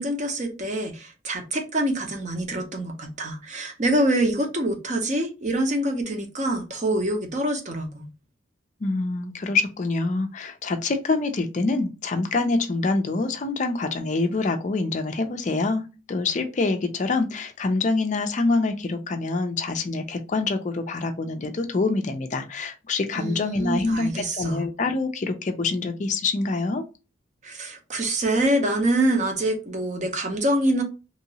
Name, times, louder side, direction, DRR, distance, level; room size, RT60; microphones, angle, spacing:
voice 1, 0.0-8.1 23.2-24.6 27.4-30.8, right 1 dB, 35° right, 0.7 m, -25 dB
voice 2, 8.8-26.8, left 3 dB, 35° left, 0.4 m, -26 dB
3.0 x 2.8 x 2.8 m
head